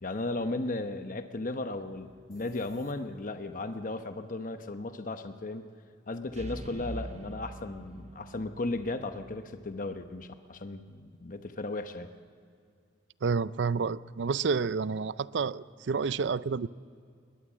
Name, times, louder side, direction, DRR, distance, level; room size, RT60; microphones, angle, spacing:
voice 1, 0.0-5.6 6.1-12.1, left 2 dB, 50° left, 8 dB, 0.9 m, -35 dB
sound 1, 2.0-2.2 6.3-10.4, right 1 dB, 40° right, 0.8 m, -45 dB
sound 2, 2.3-3.5, left 1 dB, 25° left, 2.7 m, -55 dB
voice 2, 13.2-16.7, right 5 dB, 75° right, 18 dB, 0.5 m, -29 dB
20.5 x 20.0 x 7.4 m, 2.3 s
head